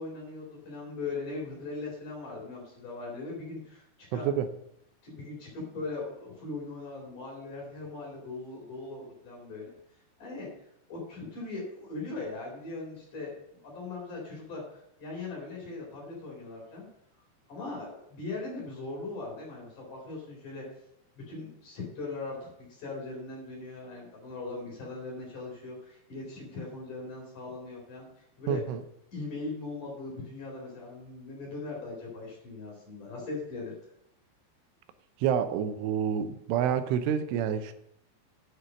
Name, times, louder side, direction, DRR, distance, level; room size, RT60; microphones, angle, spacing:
voice 1, 0.0-3.8 4.1-4.3 5.0-9.7 10.2-10.5 10.9-13.3 13.6-16.9 17.5-20.6 21.1-28.1 28.4-28.6 29.1-33.8, left 3 dB, 45° left, -2 dB, 5.1 m, -39 dB
voice 2, 4.1-4.5 28.5-28.8 35.2-37.7, right 8 dB, 85° right, 10 dB, 3.3 m, -28 dB
9.6 x 6.7 x 6.2 m, 0.78 s
omnidirectional pair, 5.4 m